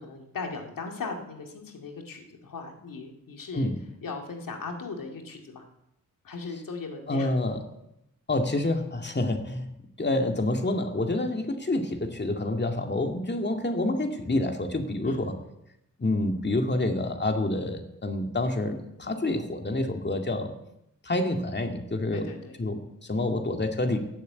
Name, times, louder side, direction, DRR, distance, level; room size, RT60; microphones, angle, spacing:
voice 1, 0.0-3.7 4.0-5.6 6.2-7.3 15.0-15.2 22.1-22.5, left 4 dB, 90° left, 2 dB, 2.3 m, -38 dB
voice 2, 7.1-7.6 8.3-9.7 10.0-15.4 16.0-20.5 21.0-22.3 22.6-24.0, left 2 dB, 35° left, 4 dB, 2.2 m, -28 dB
17.0 x 7.9 x 8.4 m, 0.81 s
cardioid pair, 70°, 32 cm